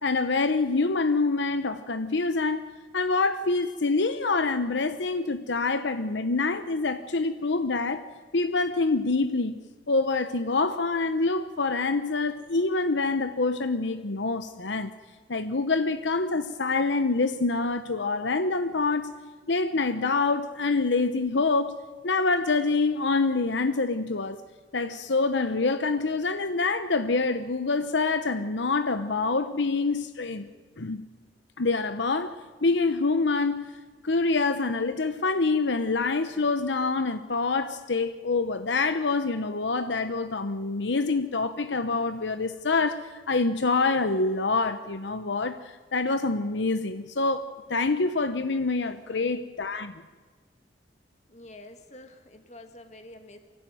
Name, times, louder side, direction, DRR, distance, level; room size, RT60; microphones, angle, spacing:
voice 1, 0.0-2.6 2.9-8.0 8.3-9.6 9.9-14.9 15.3-19.1 19.5-24.4 24.7-30.5 30.8-31.0 31.6-32.3 32.6-33.6 34.0-43.0 43.3-49.9, left 3 dB, 75° left, 1.0 m, -26 dB
voice 2, 49.1-49.4 51.3-53.4, left 1 dB, 35° left, 2.1 m, -48 dB
24.5 x 16.0 x 9.3 m
head